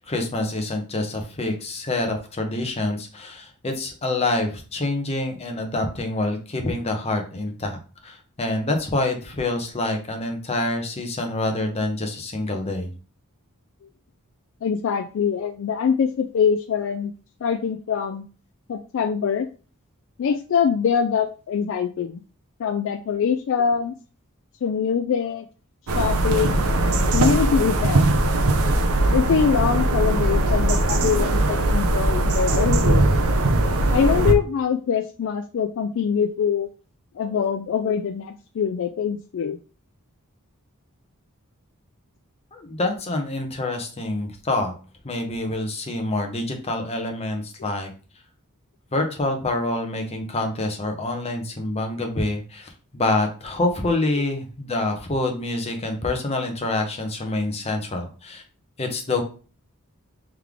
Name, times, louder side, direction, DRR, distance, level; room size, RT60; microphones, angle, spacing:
voice 1, 0.1-12.9 42.5-44.7 45.0-47.9 48.9-58.4 58.8-59.2, left 2 dB, 30° left, 4 dB, 0.8 m, -26 dB
voice 2, 14.6-17.1 17.4-18.2 18.7-19.5 20.2-22.2 22.6-23.9 24.6-25.5 25.9-28.1 29.1-33.1 33.9-36.7 37.2-39.6 47.6-47.7 54.2-54.3, left 7 dB, 60° left, 7 dB, 0.3 m, -24 dB
sound 1, 25.9-34.3, right 2 dB, 70° right, 0.6 m, -20 dB
3.5 x 3.2 x 3.5 m, 0.36 s
head